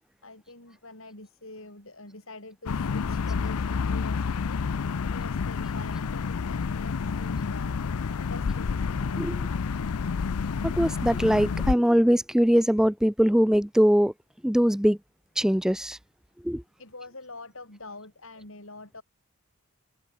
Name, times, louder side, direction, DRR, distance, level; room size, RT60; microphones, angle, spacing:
voice 1, 0.2-9.6 16.8-19.0, left 2 dB, 60° left, 7.1 m, -46 dB
conservatory ambiance recording, 2.7-11.7, left 5 dB, 85° left, 0.5 m, -29 dB
voice 2, 10.6-14.1 14.4-15.0 15.4-16.0 16.4-16.6, equal, 5° right, 0.5 m, -22 dB
head